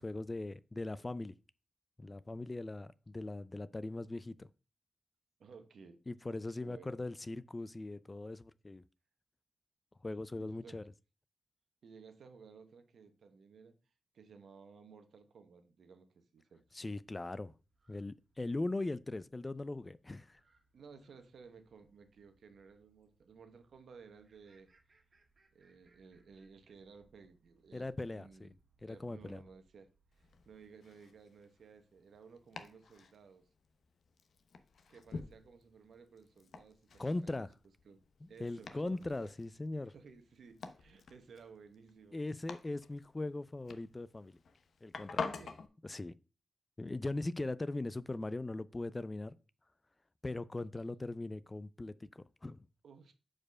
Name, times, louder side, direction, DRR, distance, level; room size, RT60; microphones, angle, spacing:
voice 1, 0.0-1.3 2.0-4.5 6.1-8.8 10.0-10.8 16.7-17.5 17.9-20.4 27.7-28.5 28.8-29.4 37.0-37.5 38.2-39.9 42.1-44.4 44.8-45.2 45.8-46.1 46.8-49.4 50.2-52.7, left 2 dB, 25° left, 0.3 m, -40 dB
voice 2, 5.4-6.0 6.6-7.0 10.4-10.8 11.8-13.7 14.1-16.6 20.7-24.7 25.5-28.5 28.8-29.9 30.2-33.5 34.9-37.5 37.8-38.0 38.3-39.3 39.9-42.2 45.2-45.6 52.8-53.1, right 5 dB, 85° right, 1.0 m, -57 dB
sound 1, 16.6-30.6, right 3 dB, 50° right, 1.7 m, -74 dB
Domestic sounds home sounds, 30.1-45.7, left 4 dB, 75° left, 0.7 m, -48 dB
5.0 x 4.5 x 6.0 m
wide cardioid pair, 90°, 0 cm